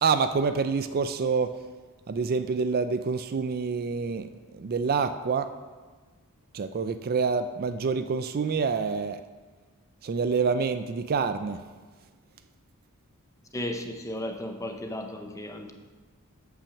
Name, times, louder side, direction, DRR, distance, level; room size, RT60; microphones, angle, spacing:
voice 1, 0.0-1.5 2.1-4.3 4.5-5.5 6.5-9.2 10.0-11.6, right 5 dB, 40° right, 10 dB, 0.4 m, -27 dB
voice 2, 13.5-15.7, left 1 dB, 15° left, 4 dB, 0.7 m, -34 dB
8.5 x 5.8 x 7.0 m, 1.4 s
head